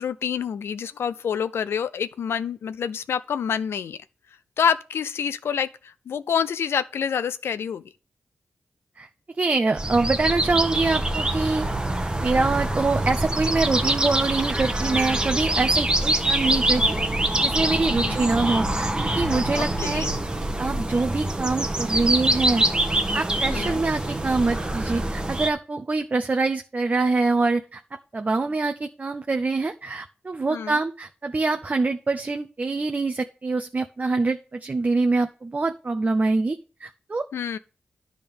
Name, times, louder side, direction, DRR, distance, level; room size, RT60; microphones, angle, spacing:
voice 1, 0.0-4.0 4.6-7.8 17.9-18.2 19.6-20.1 23.5-23.8 30.5-30.8 37.3-37.6, left 7 dB, 85° left, 0.5 m, -27 dB
voice 2, 9.4-11.7 12.2-20.0 20.6-22.6 23.1-27.8 28.1-37.2, right 3 dB, 40° right, 0.6 m, -25 dB
sound 1, 9.8-25.5, right 1 dB, 20° right, 1.1 m, -25 dB
10.5 x 3.7 x 6.9 m
cardioid pair, 50°, 4 cm